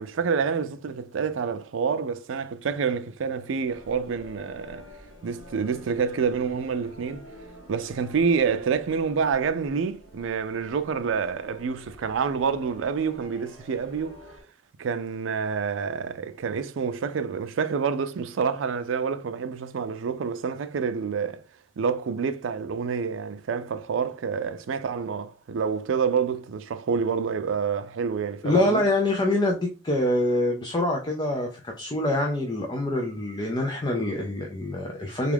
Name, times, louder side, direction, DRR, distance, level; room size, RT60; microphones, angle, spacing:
voice 1, 0.0-4.8 5.2-7.2 7.7-14.2 14.8-21.4 21.8-28.8, right 6 dB, 85° right, 0.4 m, -28 dB
sound 1, 3.7-14.4, left 1 dB, 70° left, 1.6 m, -48 dB
voice 2, 28.4-35.3, left 1 dB, 25° left, 0.4 m, -25 dB
3.5 x 2.4 x 3.4 m
head